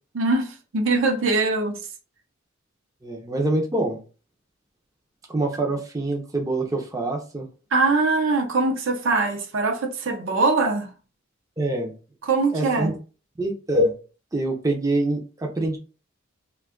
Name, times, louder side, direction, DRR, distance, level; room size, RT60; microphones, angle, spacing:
voice 1, 0.1-1.8 7.7-10.9 12.2-13.0, right 3 dB, 70° right, 0.6 m, -22 dB
voice 2, 3.0-4.0 5.3-7.5 11.6-11.9 12.5-12.9 13.4-13.9 14.3-15.8, right 1 dB, 15° right, 0.5 m, -25 dB
2.6 x 2.3 x 3.6 m
head